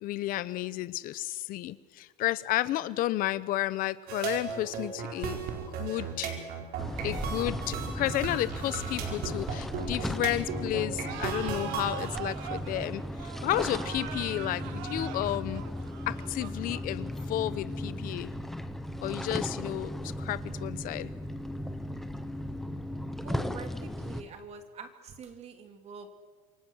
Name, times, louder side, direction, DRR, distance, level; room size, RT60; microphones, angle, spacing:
voice 1, 0.0-5.4 5.8-6.3 7.0-15.6 16.1-18.3 19.0-21.1, left 15 dB, 50° left, 16 dB, 1.0 m, -32 dB
sound 1, 4.1-12.1, right 6 dB, 55° right, 4.6 m, -36 dB
sound 2, 6.8-24.2, left 1 dB, ahead, 1.1 m, -36 dB
sound 3, 11.0-17.5, right 12 dB, 70° right, 1.4 m, -42 dB
voice 2, 23.2-26.1, right 5 dB, 35° right, 6 dB, 2.6 m, -45 dB
27.5 x 23.5 x 6.4 m, 1.5 s
cardioid pair, 165°, 19 cm